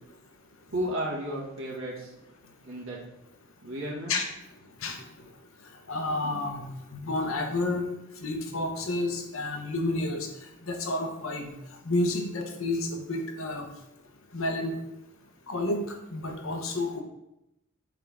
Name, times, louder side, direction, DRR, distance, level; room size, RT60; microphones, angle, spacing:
voice 1, 0.7-2.1 2.6-3.0 3.6-4.1, equal, 70° right, -4 dB, 1.9 m, -33 dB
voice 2, 5.9-7.8 8.2-10.3 10.7-11.5 11.8-13.7 14.3-14.8 15.5-15.8 16.1-17.0, left 2 dB, 70° left, 3 dB, 0.9 m, -30 dB
7.4 x 3.7 x 3.6 m, 0.89 s
head